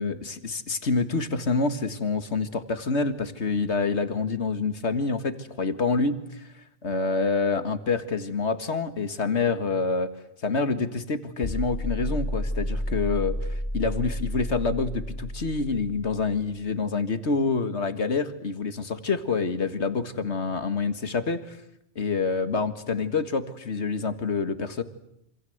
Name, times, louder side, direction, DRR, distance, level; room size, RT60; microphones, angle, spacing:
voice 1, 0.0-6.5 6.8-10.1 10.4-21.6 22.0-24.8, left 4 dB, 70° left, 10 dB, 2.1 m, -27 dB
sound 1, 11.4-16.5, equal, 35° left, 2.3 m, -31 dB
27.5 x 27.0 x 8.0 m, 0.78 s
omnidirectional pair, 1.2 m